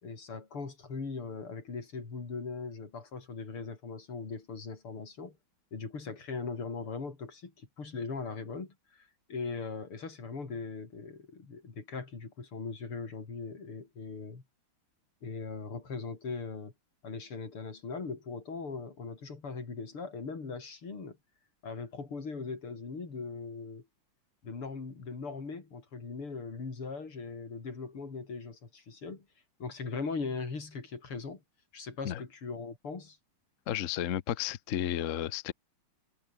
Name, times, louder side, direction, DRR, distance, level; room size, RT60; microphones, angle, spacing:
voice 1, 0.0-5.4 5.7-14.4 15.2-16.7 17.0-21.2 21.6-23.8 24.4-29.2 29.6-31.4 31.7-33.2, left 4 dB, 85° left, 5.0 m, -40 dB
voice 2, 33.7-35.5, left 11 dB, 55° left, 0.8 m, -32 dB
omnidirectional pair, 2.4 m